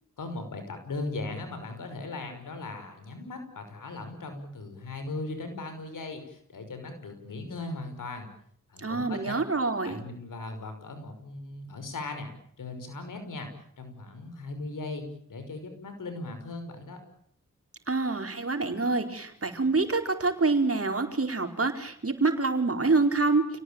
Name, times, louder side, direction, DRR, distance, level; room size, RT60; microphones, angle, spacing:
voice 1, 0.2-8.3 8.7-9.3 9.8-13.5 13.8-17.0, left 2 dB, 90° left, 7 dB, 5.6 m, -38 dB
voice 2, 8.8-10.0 17.9-23.5, right 3 dB, 45° right, 6 dB, 4.7 m, -26 dB
29.0 x 18.5 x 9.0 m, 0.67 s
cardioid pair, 40°, 31 cm